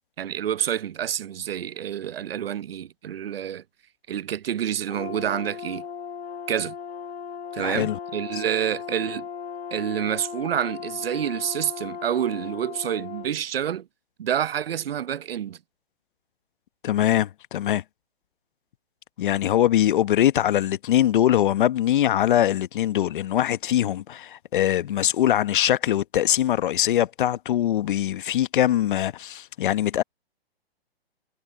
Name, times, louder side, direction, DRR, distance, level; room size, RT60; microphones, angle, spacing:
voice 1, 0.2-3.6 4.1-5.8 6.5-6.8 7.5-9.3 9.7-13.9 14.2-15.6, right 10 dB, 65° right, 0.8 m, -28 dB
Brass instrument, 4.9-13.3, left 7 dB, 75° left, 1.6 m, -37 dB
voice 2, 7.6-8.0 8.3-8.4 16.8-17.8 19.2-30.0, left 11 dB, 55° left, 1.2 m, -22 dB
hypercardioid pair, 135°, 31 cm